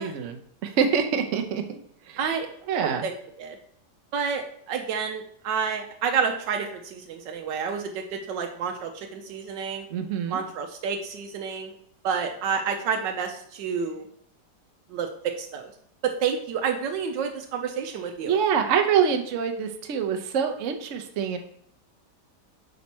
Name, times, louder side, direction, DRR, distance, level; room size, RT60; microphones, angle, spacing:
voice 1, 0.0-1.8 2.1-2.4 2.7-3.1 9.9-10.4 18.3-21.4, right 7 dB, 55° right, 6 dB, 0.9 m, -25 dB
voice 2, 2.2-2.5 2.7-3.1 3.4-3.6 4.1-9.9 10.3-11.7 12.0-14.1 14.9-15.7 16.0-18.3, right 6 dB, 85° right, 3 dB, 1.3 m, -29 dB
5.4 x 4.2 x 6.0 m, 0.65 s
omnidirectional pair, 1.9 m